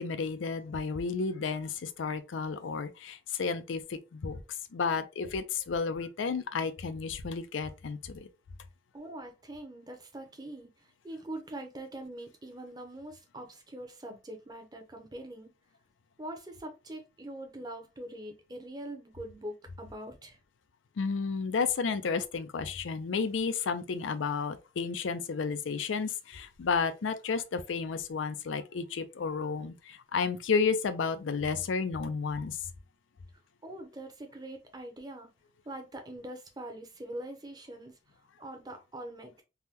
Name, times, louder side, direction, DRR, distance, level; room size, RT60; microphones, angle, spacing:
voice 1, 0.0-4.4 4.7-8.3 21.0-32.6, left 5 dB, 85° left, 0.5 m, -32 dB
voice 2, 8.9-15.5 16.2-20.4 33.6-35.3 35.6-39.4, right 1 dB, 20° right, 0.7 m, -43 dB
3.5 x 2.2 x 2.8 m
head